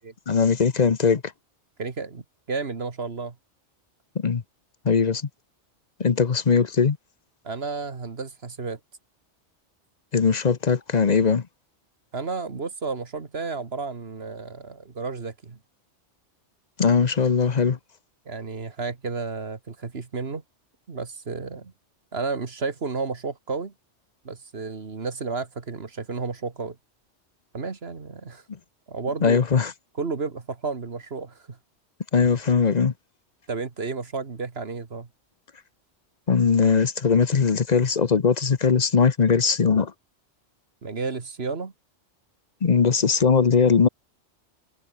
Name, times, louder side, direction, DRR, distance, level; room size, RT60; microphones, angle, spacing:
voice 1, 0.3-1.2 4.1-4.4 4.8-5.2 6.0-7.0 10.1-11.4 16.8-17.8 29.2-29.7 32.1-32.9 36.3-39.9 42.6-43.9, left 5 dB, 40° left, 0.9 m, -20 dB
voice 2, 1.8-3.4 7.4-8.8 12.1-15.6 18.3-20.4 20.9-21.7 22.1-23.7 24.2-26.8 27.5-28.4 28.9-29.4 30.0-31.6 33.5-35.1 40.8-41.7, right 4 dB, 55° right, 2.0 m, -32 dB
omnidirectional pair, 1.2 m